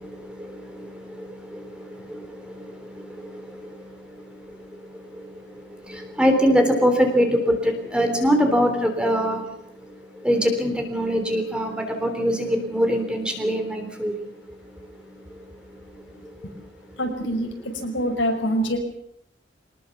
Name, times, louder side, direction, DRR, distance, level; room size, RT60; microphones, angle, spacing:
voice 1, 0.0-17.0, equal, 5° right, 4 dB, 3.5 m, -25 dB
voice 2, 17.0-18.8, equal, 75° left, 3 dB, 5.9 m, -25 dB
24.5 x 19.5 x 7.2 m, 0.74 s
head